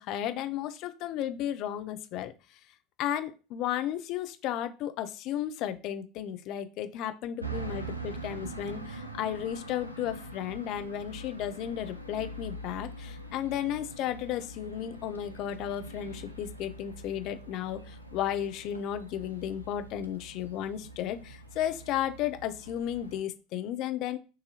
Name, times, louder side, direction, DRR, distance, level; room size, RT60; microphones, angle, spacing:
voice 1, 0.0-2.3 3.0-24.2, left 11 dB, 50° left, 10 dB, 0.5 m, -34 dB
sound 1, 7.4-23.2, right 2 dB, 90° right, 0.5 m, -43 dB
6.4 x 2.7 x 2.8 m, 0.33 s
figure-of-eight pair, 75°, 0 cm